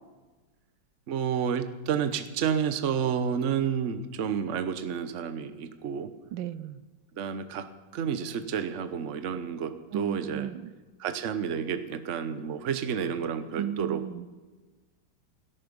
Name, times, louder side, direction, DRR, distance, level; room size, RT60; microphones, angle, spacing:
voice 1, 1.1-6.1 7.2-10.5 11.0-14.0, right 7 dB, 45° right, 11 dB, 1.1 m, -30 dB
voice 2, 6.3-6.8 9.9-10.7 13.6-14.3, right 11 dB, 80° right, 16 dB, 1.4 m, -34 dB
17.0 x 13.5 x 5.3 m, 1.3 s
omnidirectional pair, 2.1 m